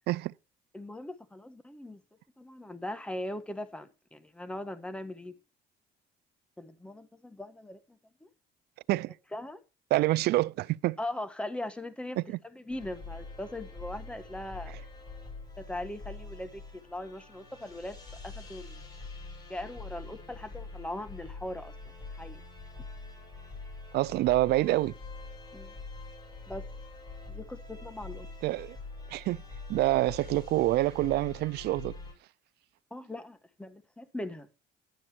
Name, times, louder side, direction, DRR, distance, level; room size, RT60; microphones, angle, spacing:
voice 1, 0.7-2.0 2.4-5.3 6.6-7.8 8.2-8.3 9.3-9.6 11.0-12.2 12.5-14.8 15.6-18.0 18.2-18.8 19.5-21.7 22.2-22.4 25.5-25.7 26.5-26.6 27.3-28.3 32.9-34.5, left 1 dB, 5° left, 1.3 m, -40 dB
voice 2, 9.9-11.0 12.2-12.4 23.9-24.9 28.4-28.8 29.1-29.4 29.7-32.0, right 17 dB, 75° right, 0.4 m, -27 dB
sound 1, 12.7-32.1, left 3 dB, 25° left, 7.4 m, -45 dB
11.5 x 7.2 x 4.4 m
cardioid pair, 110°, 17 cm